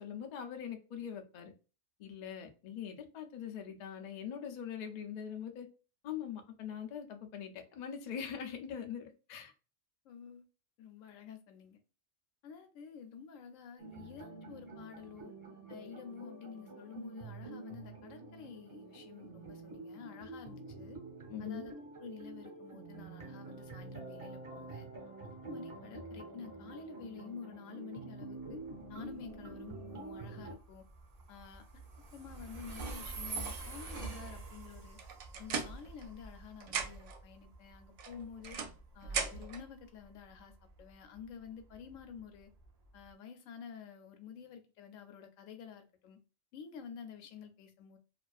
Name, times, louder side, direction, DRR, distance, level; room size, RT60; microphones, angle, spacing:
voice 1, 0.0-1.5 2.0-5.7 6.0-9.5 21.3-21.7, left 8 dB, 60° left, 0.4 m, -42 dB
voice 2, 10.0-10.4 10.8-11.8 12.4-15.3 15.7-21.0 21.4-24.9 25.2-28.6 28.9-30.8 31.3-31.8 32.1-35.0 35.4-38.6 38.9-40.5 40.8-42.5 42.9-46.2 46.5-48.0, left 7 dB, 90° left, 1.0 m, -50 dB
sound 1, 13.8-30.5, right 3 dB, 30° right, 0.7 m, -47 dB
Train, 28.4-43.1, right 4 dB, 60° right, 0.4 m, -47 dB
sound 2, 35.0-36.4 36.6-37.2 38.0-39.6, right 5 dB, 75° right, 0.9 m, -38 dB
2.5 x 2.5 x 2.2 m
omnidirectional pair, 1.3 m